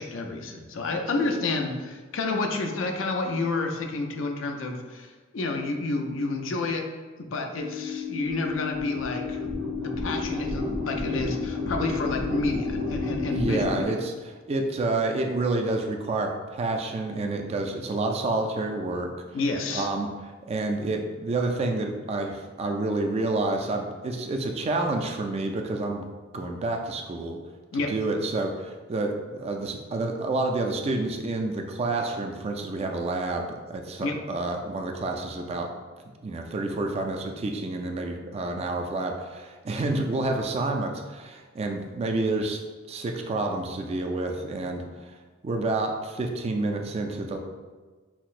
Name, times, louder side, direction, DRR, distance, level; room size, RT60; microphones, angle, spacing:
voice 1, 0.0-6.8 7.2-9.5 9.8-13.9 19.3-19.9 27.7-27.9 34.0-34.2, left 3 dB, 70° left, 3 dB, 0.5 m, -29 dB
sound 1, 7.6-13.8, left 4 dB, 65° right, 0.9 m, -31 dB
voice 2, 13.3-19.1 19.7-20.1 20.4-26.1 26.3-27.4 27.9-35.7 36.2-42.6 42.9-45.1 45.4-47.4, right 2 dB, 30° right, 3 dB, 0.3 m, -29 dB
5.7 x 2.0 x 2.4 m, 1.4 s
head